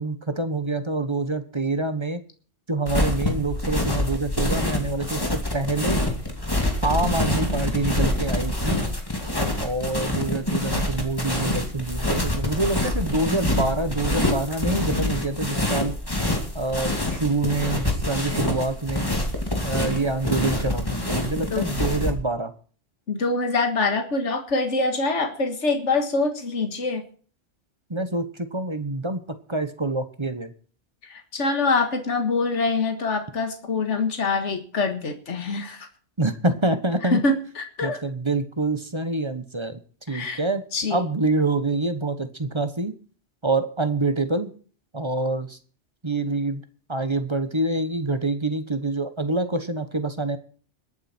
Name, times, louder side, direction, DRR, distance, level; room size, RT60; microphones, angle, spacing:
voice 1, 0.0-2.2 2.7-6.0 6.8-8.8 9.6-15.9 16.5-19.1 19.6-22.5 27.9-28.2 28.5-29.2 29.5-30.5 36.2-37.2 37.8-39.8 40.1-40.6 40.9-42.9 43.4-44.5 44.9-45.5 46.0-46.6 46.9-50.4, right 2 dB, 25° right, 10 dB, 1.2 m, -26 dB
sound 1, 2.9-22.1, left 1 dB, 20° left, 2.5 m, -26 dB
voice 2, 23.1-27.0 31.0-35.9 37.0-38.0 40.1-40.4 40.7-41.1, left 3 dB, 75° left, 6 dB, 2.0 m, -25 dB
21.5 x 9.1 x 4.4 m, 0.42 s
omnidirectional pair, 1.2 m